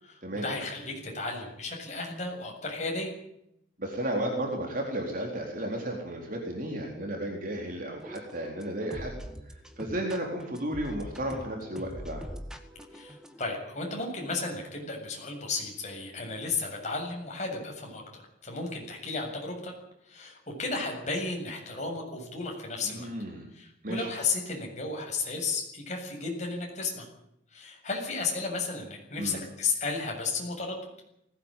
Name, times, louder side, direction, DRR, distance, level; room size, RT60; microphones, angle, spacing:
voice 1, 0.0-3.1 12.9-19.7 20.1-23.1 23.5-27.1 27.5-30.9, left 3 dB, 35° left, 1 dB, 7.5 m, -34 dB
voice 2, 3.8-9.1 9.5-12.2 22.8-23.5 23.8-24.1 29.2-29.4, right 1 dB, 45° right, 1 dB, 4.1 m, -33 dB
sound 1, 8.0-13.5, equal, 5° right, 1.9 m, -43 dB
20.0 x 18.0 x 9.2 m, 0.79 s
head